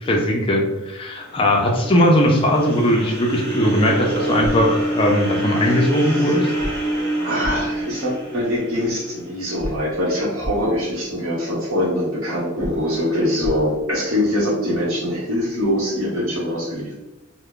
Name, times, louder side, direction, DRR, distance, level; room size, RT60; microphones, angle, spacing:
voice 1, 0.0-6.5, equal, 25° left, 0 dB, 0.4 m, -19 dB
sound 1, 1.2-9.4, right 1 dB, 45° right, 1.2 m, -26 dB
sound 2, 4.4-4.5 6.6-6.7 7.4-7.5 9.6-9.7 10.4-10.5 12.6-12.7 13.4-13.5, equal, 20° right, 0.6 m, -28 dB
voice 2, 7.2-16.9, left 1 dB, 65° right, -5 dB, 1.3 m, -23 dB
3.3 x 2.1 x 3.6 m, 1.0 s
head